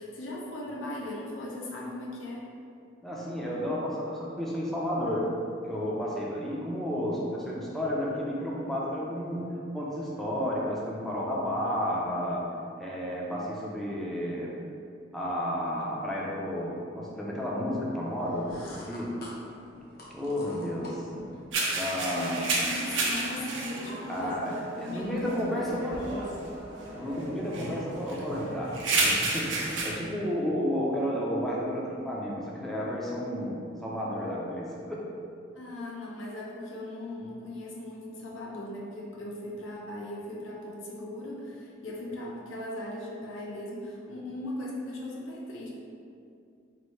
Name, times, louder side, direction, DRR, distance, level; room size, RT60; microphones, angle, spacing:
voice 1, 0.0-2.4 20.8-21.0 22.1-26.3 27.5-27.7 35.5-45.7, left 1 dB, 85° left, -3 dB, 0.7 m, -38 dB
voice 2, 3.0-5.4 5.7-12.5 12.8-14.5 15.1-19.2 20.1-21.1 21.7-22.4 24.1-26.3 26.9-35.1, equal, ahead, -5 dB, 0.5 m, -32 dB
sound 1, 18.2-21.5, left 1 dB, 50° left, 0.7 m, -46 dB
sound 2, 21.5-29.9, right 2 dB, 75° right, 0.6 m, -32 dB
3.1 x 2.6 x 4.3 m, 2.5 s
head